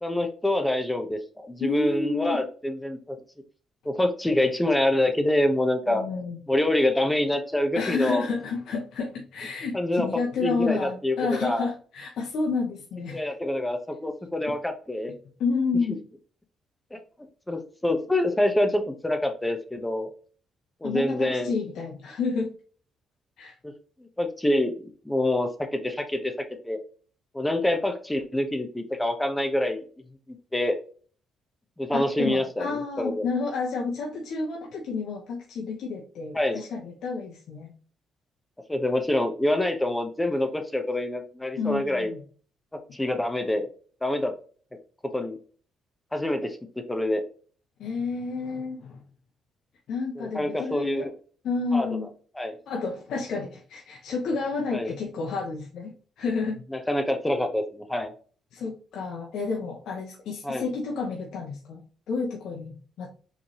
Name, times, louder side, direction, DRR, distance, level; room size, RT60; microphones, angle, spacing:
voice 1, 0.0-3.2 3.8-6.0 6.5-8.2 9.7-11.7 13.1-15.1 16.9-17.0 17.5-20.1 20.8-21.5 23.6-23.7 24.2-26.8 27.3-29.8 30.5-30.8 31.8-33.3 36.3-36.6 38.7-42.1 42.9-43.7 44.0-44.3 45.1-45.4 46.1-46.6 46.9-47.2 50.2-51.1 51.7-51.9 52.3-52.6 54.7-54.9 56.7-58.1 60.4-60.6, left 1 dB, 10° left, 0.7 m, -26 dB
voice 2, 1.6-2.4 5.9-6.4 7.8-13.2 15.4-16.0 20.8-22.5 23.4-23.5 31.9-37.7 41.6-42.2 47.8-49.0 49.9-51.1 51.4-52.1 52.7-56.6 58.5-61.8 62.1-63.1, left 4 dB, 75° left, 0.8 m, -30 dB
5.0 x 3.2 x 2.8 m
cardioid pair, 90°, 0 cm